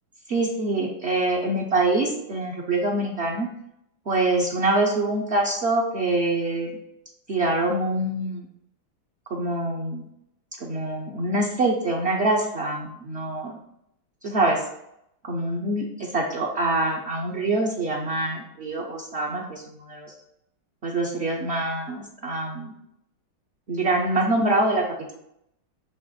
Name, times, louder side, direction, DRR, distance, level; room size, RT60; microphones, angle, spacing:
voice 1, 0.3-3.5 4.1-6.8 7.3-8.5 9.3-10.0 10.6-13.6 14.2-14.6 15.3-20.1 20.8-22.7 23.7-24.8, right 2 dB, 50° right, -2 dB, 0.8 m, -25 dB
6.9 x 3.1 x 5.7 m, 0.79 s
omnidirectional pair, 2.1 m